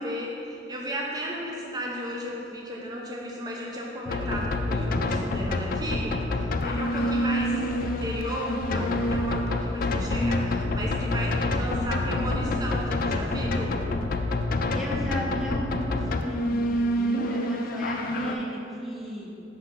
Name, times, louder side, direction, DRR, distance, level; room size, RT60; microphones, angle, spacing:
voice 1, 0.0-13.8, equal, 25° right, -2 dB, 0.6 m, -34 dB
sound 1, 4.1-18.4, left 1 dB, 55° left, 0.4 m, -27 dB
voice 2, 14.7-19.4, equal, ahead, -4 dB, 0.9 m, -35 dB
6.0 x 4.1 x 5.1 m, 2.8 s
head